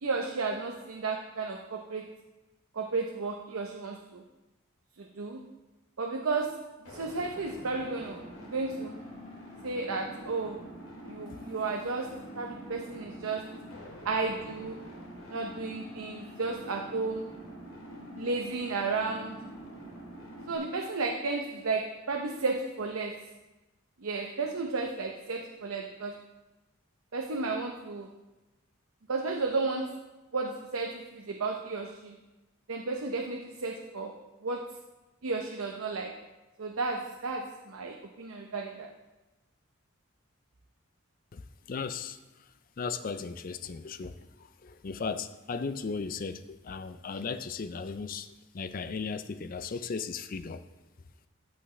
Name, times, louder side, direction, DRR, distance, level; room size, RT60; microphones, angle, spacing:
voice 1, 0.0-2.1 2.7-4.2 5.0-5.4 6.0-9.0 9.6-10.6 11.1-13.5 14.0-14.8 15.3-17.2 18.2-19.4 20.5-23.3 24.0-26.2 27.1-28.1 29.1-30.0 30.3-32.2 32.7-34.8 35.2-36.2 36.6-38.9, right 3 dB, 85° right, 2 dB, 0.7 m, -33 dB
sound 1, 6.9-20.6, equal, 90° left, 2.2 m, -45 dB
voice 2, 41.3-50.6, left 5 dB, 40° left, 12 dB, 0.4 m, -37 dB
14.0 x 5.7 x 3.2 m, 1.1 s
head